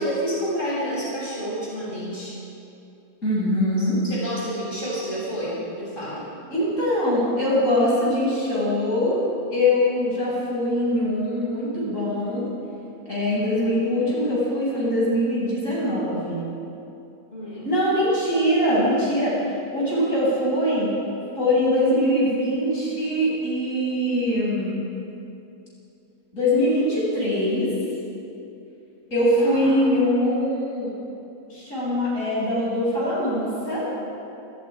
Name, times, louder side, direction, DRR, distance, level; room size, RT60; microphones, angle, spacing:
voice 1, 0.0-2.3 3.8-6.3 17.3-17.7 29.4-29.9, equal, 35° left, -7 dB, 8.3 m, -29 dB
voice 2, 3.2-4.0 6.5-9.2 9.5-12.5 13.1-16.5 17.6-19.4 19.7-20.9 21.4-24.7 26.3-27.7 29.1-30.9 31.5-33.8, left 1 dB, 55° left, -7 dB, 8.7 m, -22 dB
29.0 x 27.5 x 5.2 m, 2.8 s
omnidirectional pair, 1.6 m